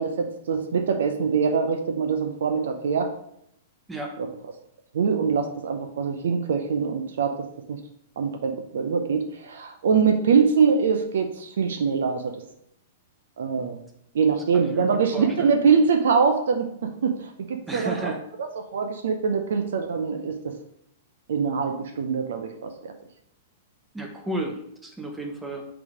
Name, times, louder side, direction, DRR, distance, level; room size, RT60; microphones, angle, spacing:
voice 1, 0.0-3.1 4.2-4.3 4.9-7.8 8.2-12.4 13.4-13.8 14.1-18.1 18.6-20.5 21.3-22.9, right 5 dB, 60° right, 6 dB, 0.6 m, -23 dB
voice 2, 14.5-15.6 17.7-18.2 23.9-25.6, right 1 dB, 10° right, 2 dB, 1.1 m, -33 dB
4.8 x 4.0 x 5.0 m, 0.74 s
figure-of-eight pair, 105°, 0 cm